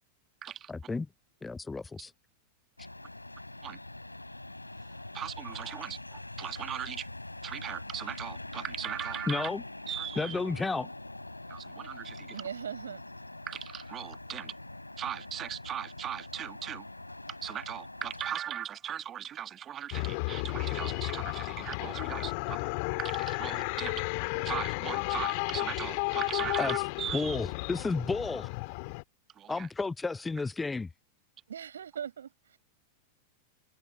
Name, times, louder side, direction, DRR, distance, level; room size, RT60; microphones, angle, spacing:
voice 1, 0.7-1.1 1.4-2.1 9.3-9.6 10.2-10.9 26.6-26.8 27.1-28.5 29.5-30.9, left 3 dB, 10° left, 0.6 m, -32 dB
sound 1, 2.8-18.3, left 2 dB, 85° left, 3.4 m, -44 dB
voice 2, 5.1-7.1 7.4-9.5 9.9-10.4 11.5-12.3 13.5-14.5 15.0-16.8 17.4-22.7 23.0-24.0 24.4-27.4 29.4-29.7, right 10 dB, 25° right, 1.5 m, -38 dB
voice 3, 12.3-13.3 31.5-32.6, right 8 dB, 65° right, 7.4 m, -40 dB
sound 2, 19.9-29.0, left 32 dB, 45° left, 2.2 m, -33 dB
figure-of-eight pair, 90°, 0 cm